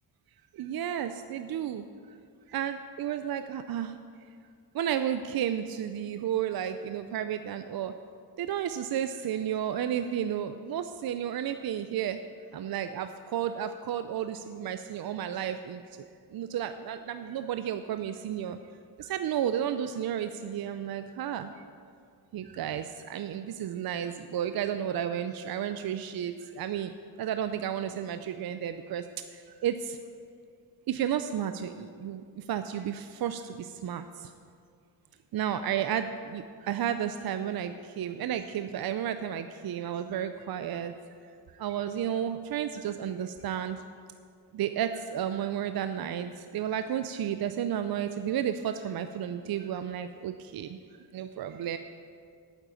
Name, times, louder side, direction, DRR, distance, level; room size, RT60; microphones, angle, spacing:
voice 1, 0.6-1.8 2.5-4.0 4.7-7.9 8.4-12.2 12.5-15.8 16.3-18.6 19.0-21.5 22.3-22.8 23.1-26.9 27.2-29.0 29.6-30.0 30.9-32.2 32.5-34.0 35.3-40.9 41.6-43.8 44.5-50.7 51.1-51.8, right 9 dB, 60° right, 10 dB, 0.5 m, -32 dB
9.0 x 7.3 x 8.1 m, 2.3 s
cardioid pair, 65°, 42 cm